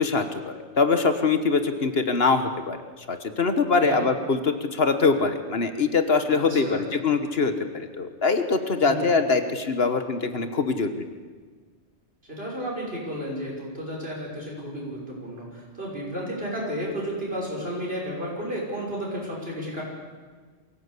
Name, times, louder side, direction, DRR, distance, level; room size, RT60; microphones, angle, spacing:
voice 1, 0.0-11.0, left 4 dB, 60° left, 8 dB, 1.5 m, -23 dB
voice 2, 6.3-6.8 8.8-9.1 12.3-19.8, equal, 55° right, -3 dB, 6.3 m, -32 dB
23.0 x 16.5 x 8.3 m, 1.5 s
omnidirectional pair, 1.2 m